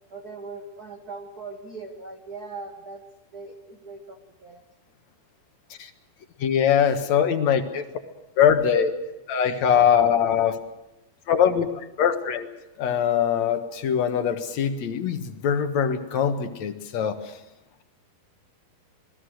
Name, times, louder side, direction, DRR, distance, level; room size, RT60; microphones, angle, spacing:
voice 1, 0.1-3.0 3.3-4.6, right 3 dB, 80° right, 4 dB, 0.8 m, -40 dB
voice 2, 6.4-7.8 8.4-8.9 9.3-10.6 11.3-11.7 12.0-12.5 12.8-17.2, left 8 dB, 60° left, 7 dB, 2.3 m, -22 dB
27.5 x 20.0 x 6.5 m, 0.95 s
omnidirectional pair, 4.3 m